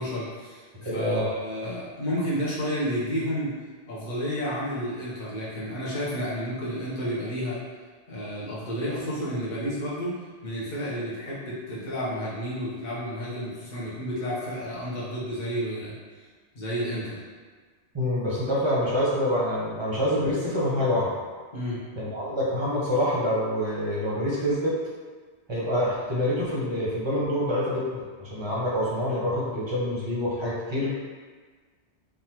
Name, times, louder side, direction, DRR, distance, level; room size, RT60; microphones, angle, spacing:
voice 1, 0.0-3.5 3.9-7.6 8.1-10.1 10.4-15.9 16.5-17.2 21.5-21.8, equal, 45° left, -7 dB, 0.9 m, -31 dB
voice 2, 0.7-1.3 17.9-21.1 21.9-24.8 25.5-30.9, left 1 dB, 30° right, -6 dB, 0.6 m, -26 dB
3.4 x 2.3 x 2.9 m, 1.5 s
omnidirectional pair, 1.2 m